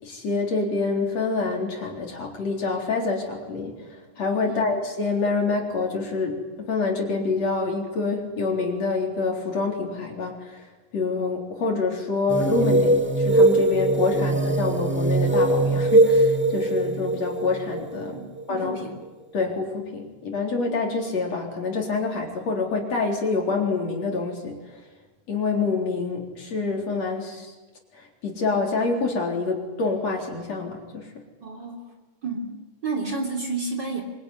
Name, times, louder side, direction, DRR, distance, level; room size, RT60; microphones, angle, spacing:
voice 1, 0.0-10.7 10.9-18.2 18.5-18.8 19.3-24.6 25.3-27.5 27.9-31.1, left 4 dB, 50° left, 1 dB, 4.9 m, -26 dB
sound 1, 12.3-18.7, right 2 dB, 5° right, 1.5 m, -21 dB
voice 2, 18.1-18.9 31.4-31.8 32.2-34.0, right 3 dB, 30° right, 2 dB, 3.8 m, -31 dB
25.0 x 24.0 x 9.8 m, 1.2 s
omnidirectional pair, 3.9 m